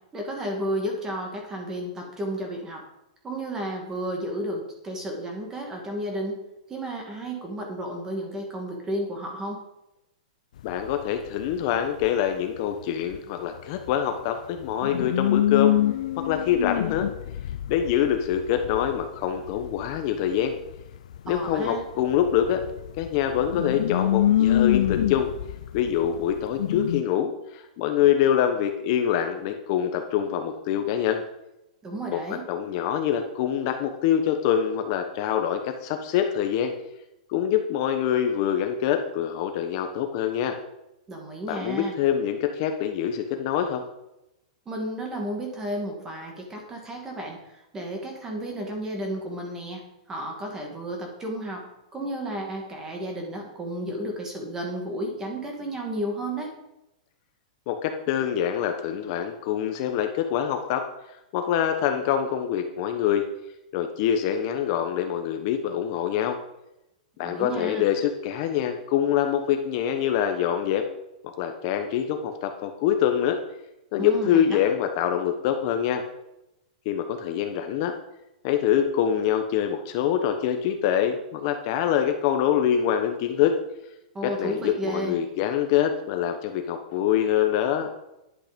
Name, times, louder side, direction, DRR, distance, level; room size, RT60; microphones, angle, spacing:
voice 1, 0.1-2.9 3.2-6.4 6.7-9.6 21.3-21.8 31.8-32.5 41.1-42.0 44.7-56.5 67.2-67.9 74.0-74.6 84.1-85.2, right 1 dB, 10° right, 2 dB, 2.2 m, -32 dB
sound 1, 10.6-10.9 11.3-12.1 13.1-13.2 13.6-13.7 13.9-14.0 14.6-21.8 22.1-27.0, left 11 dB, 65° left, 0.4 m, -26 dB
voice 2, 10.6-15.7 16.2-17.1 17.7-20.6 21.2-22.6 23.0-25.3 25.7-31.2 32.1-36.7 37.3-40.6 41.5-43.8 57.7-60.8 61.3-63.3 63.7-66.4 67.2-70.8 71.4-73.4 73.9-76.0 76.8-77.9 78.4-83.6 84.2-87.9, left 9 dB, 35° left, 5 dB, 1.0 m, -25 dB
11.0 x 9.0 x 5.2 m, 0.89 s
supercardioid pair, 170°, 4 cm